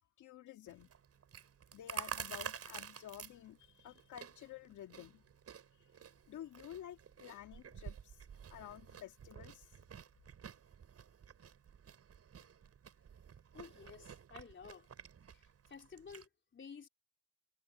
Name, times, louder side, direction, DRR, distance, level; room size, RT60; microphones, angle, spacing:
voice 1, 0.2-0.9 1.7-5.2 6.3-8.2 8.5-9.7, left 12 dB, 75° left, 2.2 m, -51 dB
Chewing mastication, 0.7-16.3, right 7 dB, 55° right, 7.4 m, -50 dB
voice 2, 13.5-14.9 15.3-15.4 15.7-16.9, left 6 dB, 40° left, 3.9 m, -53 dB
cardioid pair, 90°, 30 cm